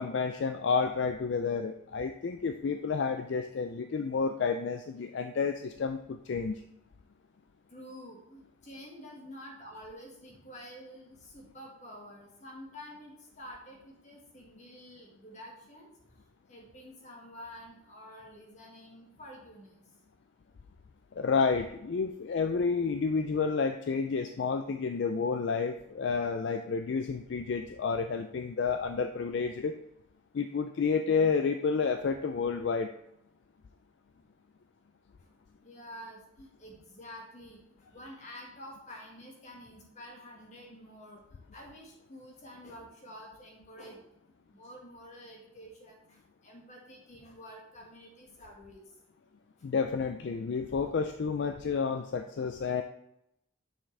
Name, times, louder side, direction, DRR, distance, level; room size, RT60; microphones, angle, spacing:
voice 1, 0.0-6.6 21.1-29.7 30.3-32.9 49.6-52.8, left 5 dB, 60° left, 8 dB, 0.4 m, -30 dB
voice 2, 7.7-15.9 16.5-19.8 35.2-35.3 35.6-37.6 37.9-41.2 41.5-44.0 44.5-48.9, equal, 35° left, -1 dB, 1.7 m, -49 dB
7.3 x 6.1 x 3.3 m, 0.82 s
head